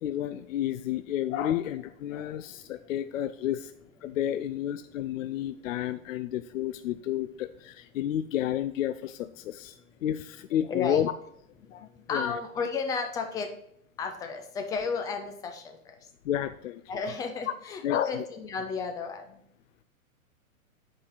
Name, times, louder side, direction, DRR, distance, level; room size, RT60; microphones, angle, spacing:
voice 1, 0.0-3.7 4.0-11.1 11.7-12.4 16.2-16.8 17.8-18.2, left 11 dB, 60° left, 11 dB, 0.6 m, -31 dB
voice 2, 10.7-11.0 12.1-13.5 14.0-16.0 16.9-19.4, left 5 dB, 10° left, 5 dB, 0.4 m, -33 dB
8.7 x 4.9 x 4.0 m, 0.70 s
hypercardioid pair, 125°, 43 cm